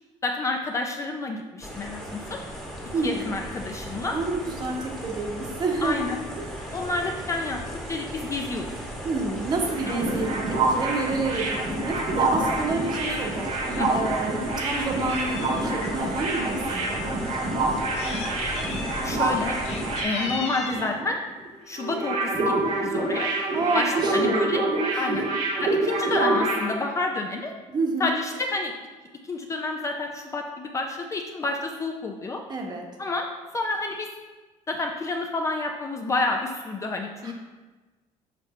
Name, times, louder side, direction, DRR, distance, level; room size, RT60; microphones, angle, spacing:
voice 1, 0.2-2.4 3.0-4.2 5.8-6.2 6.7-7.6 7.9-8.7 9.9-10.1 13.8-13.9 19.0-19.6 20.0-21.2 21.7-22.5 22.8-23.3 23.7-24.6 25.0-25.2 25.6-27.5 28.0-28.7 29.2-32.4 33.0-33.3 33.5-34.1 34.7-37.3, left 3 dB, 25° left, 2 dB, 0.4 m, -29 dB
sound 1, 1.6-20.0, equal, 5° left, 1.2 m, -36 dB
voice 2, 2.9-3.3 4.1-6.0 6.4-6.8 9.0-11.5 11.7-13.5 13.9-17.0 23.5-25.2 27.7-28.1 32.5-32.8 37.2-37.3, right 3 dB, 30° right, 1 dB, 1.0 m, -29 dB
sound 2, 9.5-21.0 21.3-21.5 21.8-26.7, right 2 dB, 70° right, 1.7 m, -27 dB
Meow, 13.6-13.8 14.2-15.9 16.7-16.8 17.7-18.3 18.5-19.0 19.5-20.9 21.9-22.2 22.6-22.7 22.9-23.0 23.3-23.9, left 4 dB, 55° left, 0.9 m, -37 dB
6.7 x 5.5 x 3.1 m, 1.3 s
cardioid pair, 155°, 13 cm